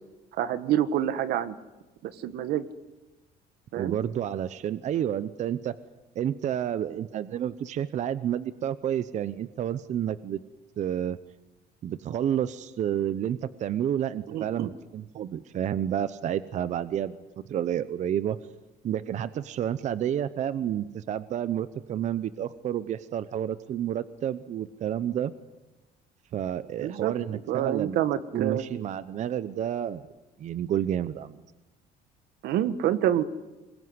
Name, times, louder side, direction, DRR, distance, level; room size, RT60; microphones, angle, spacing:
voice 1, 0.3-1.6 2.0-2.6 3.7-3.9 14.3-14.7 26.8-27.1 27.5-28.6 32.4-33.2, right 11 dB, 80° right, 13 dB, 1.5 m, -27 dB
voice 2, 3.8-5.7 6.2-10.4 10.8-11.2 11.8-17.2 17.5-18.4 18.8-25.3 26.3-28.0 28.3-30.1 30.4-31.4, right 10 dB, 45° right, 15 dB, 0.8 m, -30 dB
25.0 x 22.0 x 9.7 m, 1.1 s
cardioid pair, 150°, 16 cm